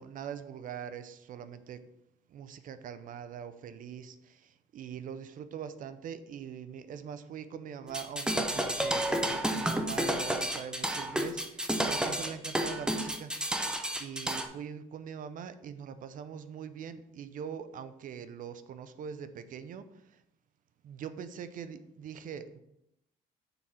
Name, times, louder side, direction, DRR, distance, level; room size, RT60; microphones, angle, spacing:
voice 1, 0.0-1.8 2.3-13.7 14.0-20.2 20.8-22.6, right 8 dB, 50° right, 12 dB, 0.5 m, -43 dB
sound 1, 7.9-14.4, right 1 dB, 5° right, 0.6 m, -31 dB
6.8 x 3.7 x 4.3 m, 0.82 s
cardioid pair, 110°, 17 cm